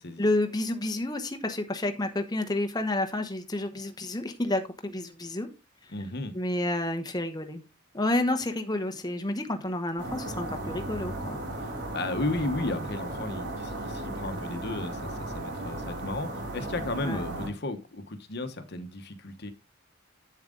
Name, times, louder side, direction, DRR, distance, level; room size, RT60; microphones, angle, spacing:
voice 1, 0.2-5.5 6.3-7.6 7.9-11.4 17.0-17.2, left 1 dB, 20° left, 1.0 m, -30 dB
voice 2, 5.9-6.4 11.6-19.5, left 2 dB, 50° left, 1.1 m, -34 dB
sound 1, 10.0-17.5, right 1 dB, 55° right, 3.5 m, -36 dB
8.7 x 7.3 x 3.8 m
head